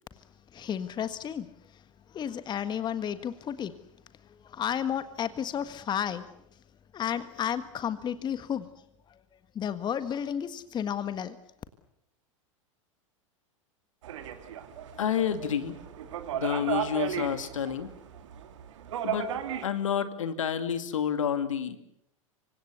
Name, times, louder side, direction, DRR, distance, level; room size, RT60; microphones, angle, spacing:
voice 1, 0.5-1.5 1.7-1.8 2.1-3.8 4.2-6.3 6.9-8.7 9.1-9.2 9.5-11.4, left 9 dB, 25° left, 12 dB, 1.5 m, -32 dB
sound 1, 14.0-19.7, right 9 dB, 60° right, 2.9 m, -35 dB
voice 2, 15.0-15.7 16.3-17.9 19.0-19.3 19.6-21.8, left 8 dB, 70° left, 10 dB, 2.4 m, -29 dB
27.5 x 25.0 x 6.9 m, 0.74 s
figure-of-eight pair, 90°, 17 cm